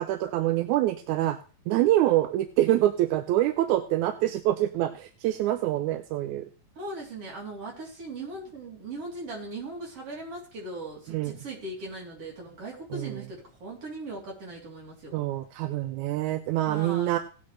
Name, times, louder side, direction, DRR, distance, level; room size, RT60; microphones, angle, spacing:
voice 1, 0.0-1.4 1.7-6.5 11.1-11.3 12.9-13.2 15.1-17.2, right 14 dB, 75° right, 9 dB, 1.8 m, -25 dB
voice 2, 6.8-15.2 16.6-17.1, right 2 dB, 45° right, -2 dB, 4.1 m, -39 dB
17.5 x 8.5 x 3.2 m, 0.39 s
omnidirectional pair, 3.9 m